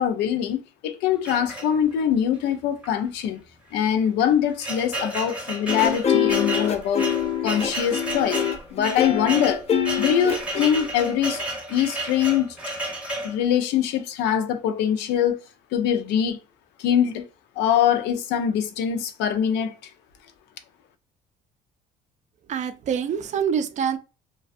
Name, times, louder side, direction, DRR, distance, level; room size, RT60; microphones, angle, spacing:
voice 1, 0.0-3.4 3.7-7.1 7.4-8.4 8.7-9.7 10.0-11.4 11.7-12.6 13.2-15.4 15.7-16.4 16.8-17.3 17.6-19.7, left 9 dB, 90° left, 0.5 m, -23 dB
sound 1, 1.2-2.1 2.8-3.0 3.2-3.3 4.0-13.4, right 1 dB, 5° right, 0.8 m, -32 dB
sound 2, 5.7-11.4, left 9 dB, 40° left, 0.5 m, -25 dB
voice 2, 22.5-24.0, right 7 dB, 45° right, 0.4 m, -25 dB
2.4 x 2.2 x 2.5 m
cardioid pair, 110°, 17 cm